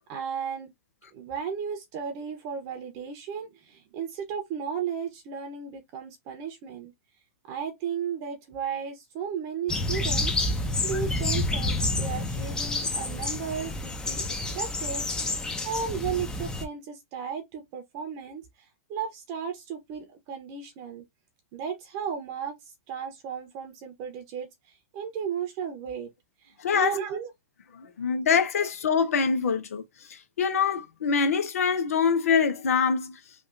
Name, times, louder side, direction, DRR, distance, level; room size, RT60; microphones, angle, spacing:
voice 1, 0.1-0.7 1.1-6.9 7.5-14.2 14.5-18.4 18.9-21.0 21.5-22.6 22.9-26.1 26.4-27.3 28.6-28.7, right 7 dB, 45° right, 0.9 m, -34 dB
sound 1, 9.7-16.6, left 2 dB, 10° left, 0.7 m, -29 dB
voice 2, 26.6-27.0 27.7-33.2, left 6 dB, 80° left, 0.9 m, -25 dB
3.4 x 2.5 x 2.6 m
hypercardioid pair, 125°, 8 cm